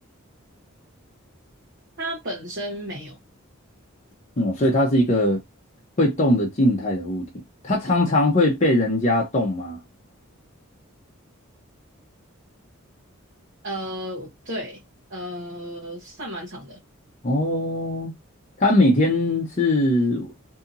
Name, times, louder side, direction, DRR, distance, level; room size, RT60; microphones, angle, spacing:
voice 1, 2.0-3.2 13.6-14.8 15.1-16.8, equal, 55° right, 0.9 m, -33 dB
voice 2, 4.4-5.4 6.0-7.3 7.6-9.8 17.2-18.1 18.6-20.3, left 1 dB, 35° left, 0.7 m, -20 dB
2.7 x 2.6 x 2.5 m
head